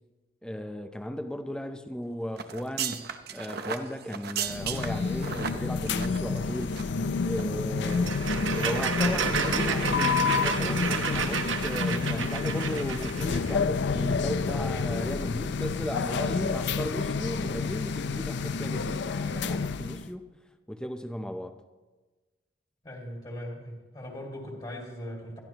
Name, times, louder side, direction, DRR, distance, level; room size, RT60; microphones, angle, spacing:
voice 1, 0.4-6.8 7.2-8.2 8.5-20.3 20.7-21.6, equal, 5° left, 0.6 m, -36 dB
sound 1, 2.4-7.1 7.3-7.4 7.9-8.6 9.0-9.2 9.5-9.7 10.0-10.1, right 7 dB, 55° right, 0.8 m, -36 dB
sound 2, 4.5-20.1, left 4 dB, 60° left, 0.5 m, -29 dB
sound 3, 7.8-13.5, right 6 dB, 75° right, 1.1 m, -31 dB
voice 2, 22.8-25.4, equal, 25° left, 2.2 m, -39 dB
21.0 x 13.5 x 3.0 m
head